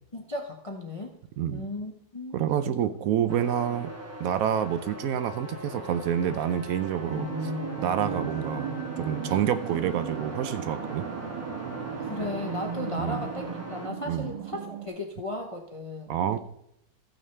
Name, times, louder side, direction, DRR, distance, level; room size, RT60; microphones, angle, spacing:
voice 1, 0.1-1.1 1.5-2.7 12.0-16.4, left 1 dB, 60° left, 2 dB, 0.3 m, -36 dB
voice 2, 1.4-1.7 2.3-3.9 4.2-7.5 7.8-8.7 9.0-11.0 13.0-13.2 14.1-14.3 16.1-16.4, right 9 dB, 70° right, 11 dB, 0.8 m, -28 dB
sound 1, 3.3-13.9, equal, 10° right, 0.7 m, -42 dB
sound 2, 5.5-12.5, left 2 dB, 15° left, 1.6 m, -49 dB
sound 3, 7.1-14.9, right 5 dB, 85° right, 1.9 m, -35 dB
14.5 x 8.9 x 3.3 m, 0.80 s
omnidirectional pair, 2.0 m